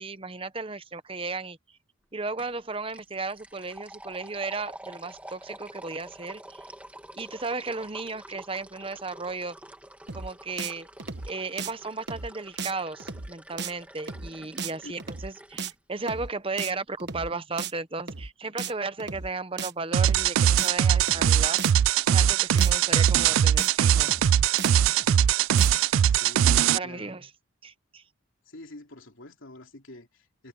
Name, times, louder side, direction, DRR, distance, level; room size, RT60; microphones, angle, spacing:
voice 1, 0.0-1.6 2.1-6.6 7.2-9.6 10.1-10.9 11.3-21.6 22.1-24.1 26.7-27.3 27.6-28.0, right 3 dB, 25° right, 0.9 m, -35 dB
sound 1, 2.4-2.6 2.9-15.7, right 1 dB, 5° right, 2.0 m, -47 dB
sound 2, 10.1-10.3 10.6-10.7 11.0-11.3 11.6-11.7 12.1-12.3 12.6-12.7 13.0-13.3 13.6-13.7 14.1-14.3 14.6-14.7 15.0-15.3 15.6-15.7 16.1-16.3 16.6-16.7 17.0-17.3 17.6-17.7 18.1-18.3 18.6-18.7 19.0-19.3 19.6-19.7 20.1-20.3 20.6-20.7 21.0-21.3 21.6-21.7 22.1-22.3 22.6-22.7 23.0-23.3 23.6-23.7 24.1-24.3 24.6-24.7 25.0-25.3 25.6-25.7, right 5 dB, 55° right, 1.3 m, -35 dB
sound 3, 19.9-26.8, right 9 dB, 80° right, 0.3 m, -21 dB
voice 2, 26.1-27.1 28.5-30.5, left 2 dB, 75° left, 3.2 m, -45 dB
head